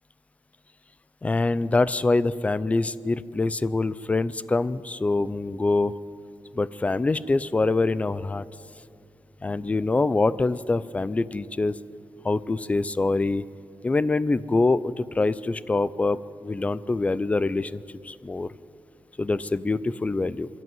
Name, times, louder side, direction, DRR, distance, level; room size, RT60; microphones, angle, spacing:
voice 1, 1.2-5.9 6.5-8.4 9.4-11.8 12.2-13.4 13.8-18.5 19.2-20.5, left 3 dB, 20° left, 17 dB, 0.4 m, -25 dB
24.5 x 12.5 x 9.4 m, 2.4 s
wide cardioid pair, 160°, 8 cm